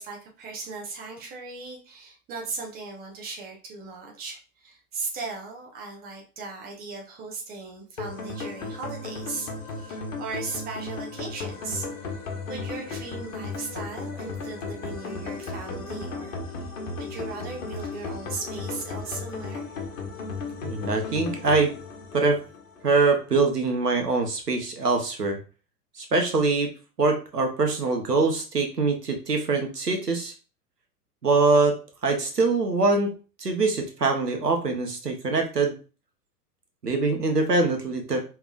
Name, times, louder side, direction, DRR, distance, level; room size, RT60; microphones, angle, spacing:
voice 1, 0.0-16.6 17.0-19.7, right 4 dB, 20° right, 0 dB, 1.1 m, -37 dB
sound 1, 8.0-23.0, left 4 dB, 55° left, 1.2 m, -35 dB
voice 2, 20.6-21.7 22.1-22.4 22.8-25.4 25.9-26.7 27.0-30.3 31.2-31.8 32.0-33.1 33.4-35.7 36.8-38.2, right 3 dB, 80° right, 3 dB, 1.2 m, -23 dB
4.9 x 3.4 x 2.5 m, 0.34 s
figure-of-eight pair, 105°, 47 cm